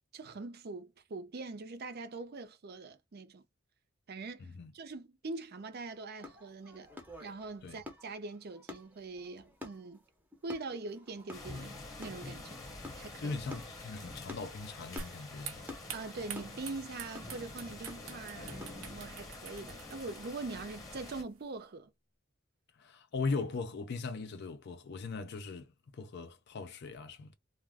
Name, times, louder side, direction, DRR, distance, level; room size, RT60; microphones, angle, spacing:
voice 1, 0.1-3.4 4.1-4.5 4.7-6.9 7.2-10.0 10.4-12.6 13.0-13.4 15.9-21.9, right 3 dB, 50° right, 0.5 m, -43 dB
voice 2, 4.4-4.7 7.6-7.8 13.2-15.6 22.8-27.3, left 4 dB, 55° left, 0.4 m, -39 dB
sound 1, 6.2-18.9, left 2 dB, 10° right, 0.6 m, -50 dB
sound 2, 11.3-21.2, left 2 dB, 15° left, 0.9 m, -47 dB
sound 3, 15.0-21.5, right 6 dB, 85° right, 0.8 m, -48 dB
2.4 x 2.1 x 3.4 m
head